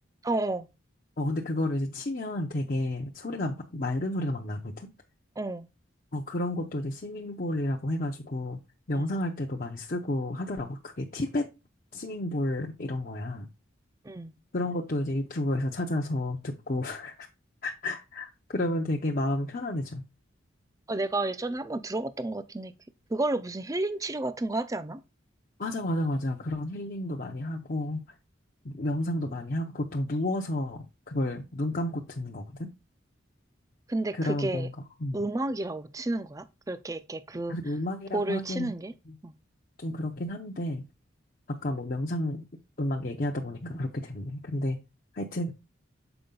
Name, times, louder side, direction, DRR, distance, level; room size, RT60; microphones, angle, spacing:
voice 1, 0.2-0.7 5.4-5.7 8.9-9.1 14.0-14.3 20.9-22.7 23.1-25.0 33.9-34.7 35.1-37.6 38.1-38.9 39.2-39.3, right 2 dB, 15° right, 0.4 m, -31 dB
voice 2, 1.2-4.9 6.1-8.6 8.9-11.5 11.9-13.5 14.5-17.3 17.6-20.0 25.6-28.0 28.6-32.7 34.1-34.7 35.0-35.2 37.5-38.7 39.1-39.2 39.8-40.8 41.5-42.5 42.8-44.8 45.1-45.5, left 1 dB, 45° left, 0.7 m, -31 dB
6.9 x 4.8 x 3.8 m
head